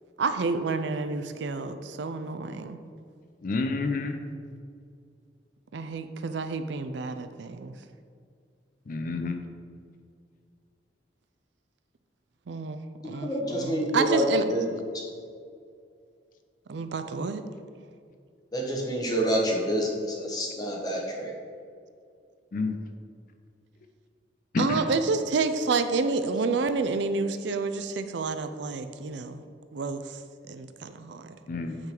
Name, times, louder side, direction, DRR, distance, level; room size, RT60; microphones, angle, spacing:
voice 1, 0.2-2.8 5.7-7.7 12.5-14.4 16.7-17.4 24.6-29.4 29.7-30.2 30.5-31.4, right 4 dB, 75° right, 9 dB, 0.4 m, -29 dB
voice 2, 3.4-4.2 8.9-9.4 22.5-22.8 24.5-24.8 31.5-31.8, left 3 dB, 50° left, 6 dB, 0.4 m, -29 dB
voice 3, 13.0-14.2 14.5-14.6 18.5-21.3, right 1 dB, 20° left, -1 dB, 1.1 m, -28 dB
8.8 x 3.9 x 4.4 m, 2.3 s
head